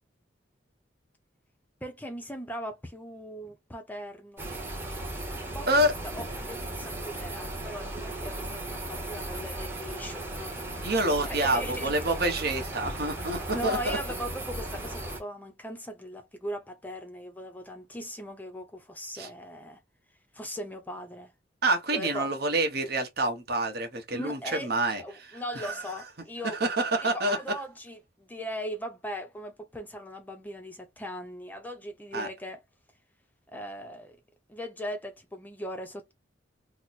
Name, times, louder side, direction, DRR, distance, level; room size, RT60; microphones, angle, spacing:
voice 1, 1.8-4.4 5.5-5.7 6.1-10.9 11.3-11.9 13.5-19.8 20.3-21.3 21.9-22.3 24.1-24.7 25.0-26.6 27.0-32.6 33.5-34.2 34.5-36.1, equal, 10° left, 0.5 m, -39 dB
sound 1, 4.4-15.2, right 1 dB, 15° right, 0.8 m, -36 dB
voice 2, 10.8-14.0 19.2-19.3 21.6-25.0 25.5-25.8 26.4-27.4 32.1-32.3, right 1 dB, 55° right, 0.9 m, -27 dB
3.0 x 2.0 x 4.0 m
head